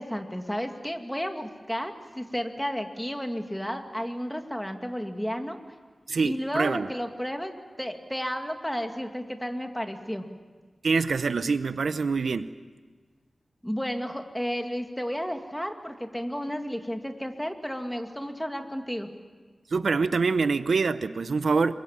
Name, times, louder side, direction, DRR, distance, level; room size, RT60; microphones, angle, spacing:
voice 1, 0.0-5.6 6.2-10.3 13.6-19.1, equal, 5° left, 5 dB, 2.3 m, -32 dB
voice 2, 6.1-6.9 10.8-12.5 19.7-21.7, right 4 dB, 80° right, 13 dB, 0.8 m, -25 dB
26.5 x 23.5 x 7.4 m, 1.5 s
wide cardioid pair, 85°, 0 cm